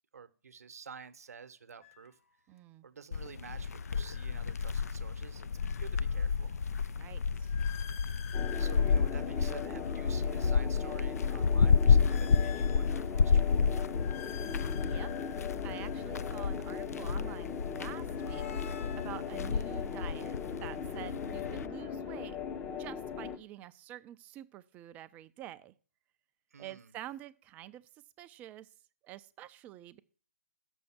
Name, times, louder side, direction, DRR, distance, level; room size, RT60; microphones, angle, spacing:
voice 1, 0.1-2.2 2.8-5.5 5.8-6.6 8.6-13.6 26.5-26.9, right 6 dB, 70° right, 12 dB, 0.8 m, -50 dB
sound 1, 1.8-2.1 3.7-5.0 5.4-10.2 10.7-13.4 13.8-16.8 17.8-20.1, left 9 dB, 55° left, 0.7 m, -51 dB
voice 2, 2.5-2.9 6.9-7.6 14.8-15.1 15.6-18.5 19.0-20.3 20.6-22.4 22.8-25.7 26.6-28.7 29.0-30.0, right 13 dB, 15° right, 13 dB, 0.3 m, -47 dB
sound 2, 3.1-21.7, left 5 dB, 70° left, 0.4 m, -31 dB
sound 3, 8.3-23.4, left 6 dB, 20° left, 0.7 m, -39 dB
6.9 x 6.3 x 5.7 m, 0.41 s
figure-of-eight pair, 135°, 9 cm